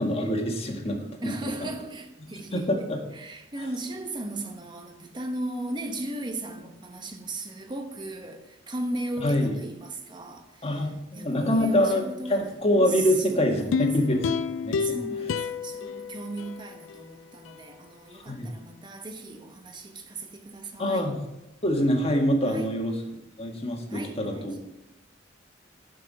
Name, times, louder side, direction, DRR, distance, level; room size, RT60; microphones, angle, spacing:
voice 1, 0.0-1.5 2.5-3.0 9.2-9.5 10.6-12.0 12.3-14.3 14.6-15.0 18.1-18.5 20.8-21.2 21.6-22.9 23.4-24.5, equal, 30° left, 1.6 m, -25 dB
voice 2, 1.2-2.7 3.1-12.5 12.9-14.2 14.8-21.1 22.5-22.7 23.9-24.7, right 2 dB, 25° right, 1.0 m, -37 dB
sound 1, 13.7-17.0 17.4-17.5, left 6 dB, 85° left, 0.4 m, -30 dB
11.5 x 5.5 x 5.4 m
head